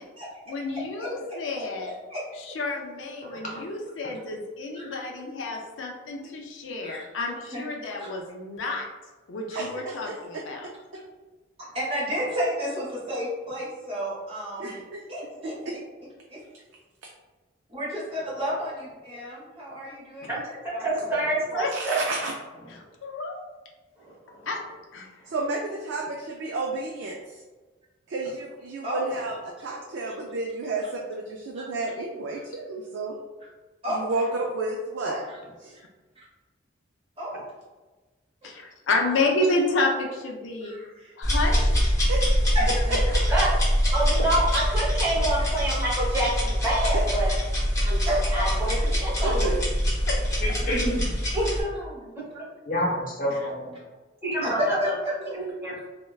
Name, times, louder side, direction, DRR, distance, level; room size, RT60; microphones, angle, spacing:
voice 1, 0.5-1.9 2.4-8.9 9.3-10.7 21.5-21.7 23.0-23.4 24.4-24.6 24.9-25.1 38.4-40.7 41.2-41.9 42.7-43.2 50.1-50.2, left 2 dB, 80° left, 0 dB, 0.4 m, -30 dB
voice 2, 1.8-2.2 2.5-2.6 3.3-3.4 4.7-5.0 6.8-7.0 7.5-7.6 8.0-8.1 8.6-8.7 9.5-9.6 11.7-14.7 15.1-15.5 16.3-16.4 17.7-20.4 20.7-21.2 28.8-29.1 31.5-31.7 33.8-34.1 35.0-35.4 37.2-37.4 38.4-38.5 40.6-41.1 42.5-42.7 43.5-43.6 48.0-48.4 51.5-52.1 54.4-54.9 55.2-55.3, equal, 30° right, -8 dB, 1.3 m, -32 dB
voice 3, 9.5-10.7 14.6-15.0 15.4-15.6 21.7-22.3 25.3-27.4 28.1-29.3 29.6-33.2 33.9-35.2 35.6-35.8 42.1-42.5 42.9-43.0 46.9-47.0 49.2-49.6, right 2 dB, 75° right, 0 dB, 0.3 m, -31 dB
voice 4, 20.3-22.0 24.0-24.5 43.3-43.5 43.9-47.3 47.8-48.0 48.3-49.6 51.3-51.7 52.3-52.5 54.2-55.0 55.3-55.8, right 1 dB, 10° right, -7 dB, 0.9 m, -27 dB
sound 1, 41.2-51.6, equal, 15° left, 0.9 m, -24 dB
voice 5, 50.4-51.1 52.7-53.8, equal, 45° left, -3 dB, 0.7 m, -28 dB
3.2 x 2.1 x 2.3 m, 1.2 s
head